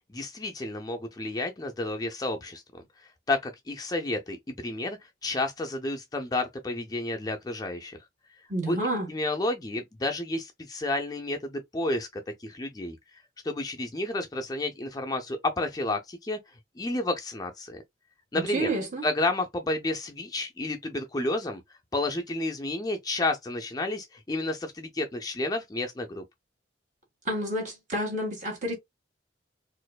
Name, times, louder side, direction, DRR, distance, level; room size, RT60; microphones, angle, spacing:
voice 1, 0.1-8.0 8.7-8.8 9.1-13.0 13.4-16.4 16.8-17.8 18.3-18.7 19.0-21.6 21.9-26.2, left 2 dB, 20° left, 0.4 m, -31 dB
voice 2, 8.5-9.1 18.3-19.1 27.3-28.7, right 1 dB, 40° right, 1.8 m, -29 dB
4.2 x 2.6 x 2.3 m
head